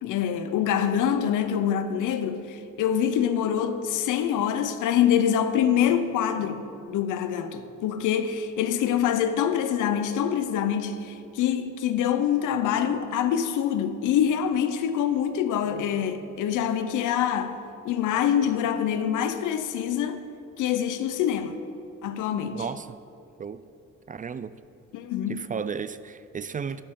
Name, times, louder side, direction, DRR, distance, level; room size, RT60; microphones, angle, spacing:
voice 1, 0.0-17.6 17.8-20.3 20.6-21.6 22.0-22.6 24.9-25.4, left 9 dB, 90° left, 0.8 m, -25 dB
voice 2, 22.5-23.0 23.4-23.6 24.1-24.5 25.3-26.8, right 6 dB, 30° right, 0.4 m, -34 dB
12.5 x 11.5 x 3.8 m
cardioid pair, 90°, 30 cm